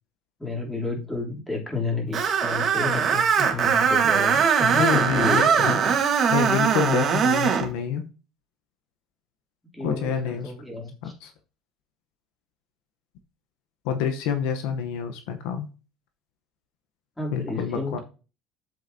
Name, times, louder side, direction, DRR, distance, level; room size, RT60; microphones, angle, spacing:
voice 1, 0.4-6.0 9.7-11.1 17.2-18.0, left 3 dB, 10° left, -2 dB, 3.2 m, -31 dB
Screech, 2.1-7.7, right 7 dB, 45° right, 1.5 m, -21 dB
voice 2, 4.7-5.8 6.3-8.0 9.8-10.5 11.0-11.3 13.8-15.7 17.3-18.0, left 7 dB, 80° left, 7 dB, 0.9 m, -27 dB
8.0 x 7.7 x 2.8 m, 0.35 s
supercardioid pair, 100°, 0 cm